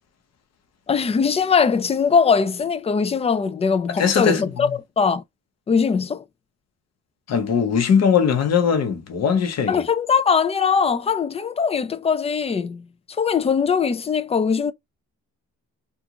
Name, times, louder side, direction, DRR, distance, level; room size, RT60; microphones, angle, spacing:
voice 1, 0.9-4.7 5.0-5.2 5.7-6.2 9.7-12.8 13.2-14.7, left 6 dB, 20° left, 0.4 m, -21 dB
voice 2, 4.0-4.5 7.3-9.8, left 7 dB, 60° left, 0.9 m, -20 dB
2.5 x 2.4 x 2.9 m
cardioid pair, 90°, 30 cm